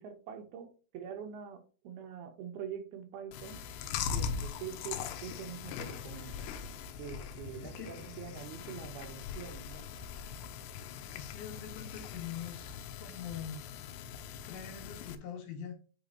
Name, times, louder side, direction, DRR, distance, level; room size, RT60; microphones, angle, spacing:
voice 1, 0.0-3.6 4.1-6.5 7.0-9.9, right 8 dB, 75° right, 6 dB, 2.8 m, -44 dB
Chewing mastication, 3.3-15.2, left 7 dB, 85° left, 2.8 m, -41 dB
voice 2, 7.6-7.9 11.1-13.6 14.5-15.7, left 8 dB, 70° left, 4 dB, 2.5 m, -43 dB
8.0 x 5.1 x 2.8 m, 0.37 s
omnidirectional pair, 4.8 m